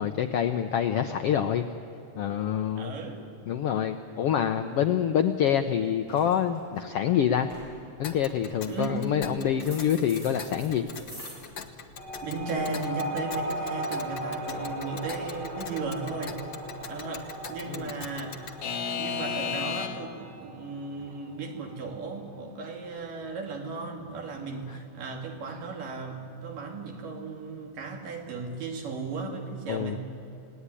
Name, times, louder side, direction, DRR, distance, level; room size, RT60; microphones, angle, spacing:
voice 1, 0.0-1.6 2.2-2.9 3.5-7.5 8.0-10.9 17.7-17.9 18.8-18.9 24.7-24.8 29.7-30.0, left 9 dB, 85° left, 8 dB, 1.3 m, -26 dB
voice 2, 2.8-3.2 8.7-9.2 12.2-16.4 16.9-18.5 18.9-30.0, right 4 dB, 80° right, 2 dB, 4.1 m, -36 dB
sound 1, 5.5-5.7 6.0-6.8 7.2-7.7 8.5-9.1 9.6-11.3, equal, 10° right, 6.4 m, -46 dB
Alarm / Clock, 8.0-20.2, left 6 dB, 55° left, 1.3 m, -38 dB
sound 2, 12.0-22.9, right 1 dB, 40° right, 3.7 m, -37 dB
30.0 x 18.0 x 9.9 m, 2.9 s
omnidirectional pair, 3.8 m